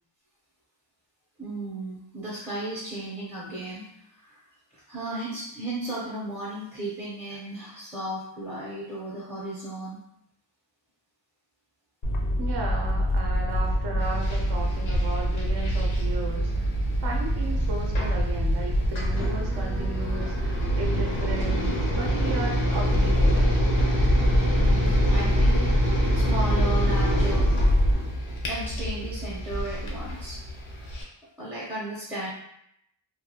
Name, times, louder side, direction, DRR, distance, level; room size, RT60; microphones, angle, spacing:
voice 1, 1.4-3.9 4.2-4.4 4.7-10.0 24.6-27.6 28.5-30.4 31.4-32.3, right 1 dB, 5° right, -7 dB, 0.5 m, -35 dB
sound 1, 12.0-27.9, equal, 50° left, 0.4 m, -25 dB
voice 2, 12.4-16.7 17.0-23.5, right 2 dB, 60° right, 0 dB, 0.5 m, -35 dB
sound 2, 14.0-31.0, equal, 90° left, 0.7 m, -29 dB
2.3 x 2.1 x 2.7 m, 0.77 s
wide cardioid pair, 140°, 46 cm